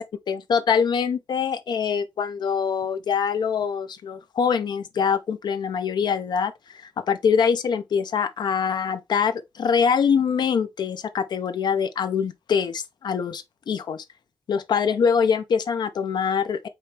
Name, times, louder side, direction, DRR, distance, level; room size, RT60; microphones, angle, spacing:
voice 1, 0.0-14.0 14.5-16.7, left 6 dB, 65° left, 0.4 m, -24 dB
4.8 x 2.9 x 3.2 m
wide cardioid pair, 145°, 8 cm